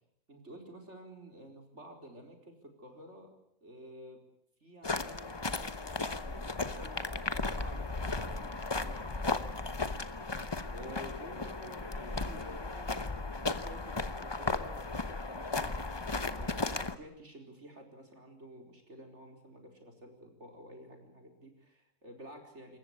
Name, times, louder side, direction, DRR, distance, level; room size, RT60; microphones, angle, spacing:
voice 1, 0.3-3.4 3.6-4.2 4.6-7.1 7.4-9.2 10.7-22.8, equal, 50° right, 3 dB, 4.8 m, -51 dB
sound 1, 4.8-17.0, left 3 dB, 20° left, 0.8 m, -35 dB
27.5 x 14.5 x 9.9 m, 0.76 s
omnidirectional pair, 1.6 m